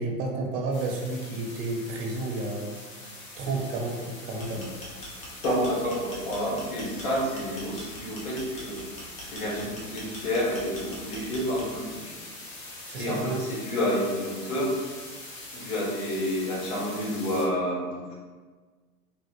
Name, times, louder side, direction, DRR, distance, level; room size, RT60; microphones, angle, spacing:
voice 1, 0.0-2.7 3.4-4.7 12.9-13.4, right 2 dB, 40° right, 0 dB, 0.8 m, -31 dB
sound 1, 0.7-17.4, left 2 dB, 45° left, 1.0 m, -43 dB
sound 2, 4.3-11.9, left 1 dB, 15° left, 0.4 m, -43 dB
voice 2, 5.4-8.8 9.3-12.1 13.0-14.7 15.5-18.1, equal, 60° left, -5 dB, 1.4 m, -29 dB
3.2 x 2.3 x 2.9 m, 1.4 s
hypercardioid pair, 100°, 48 cm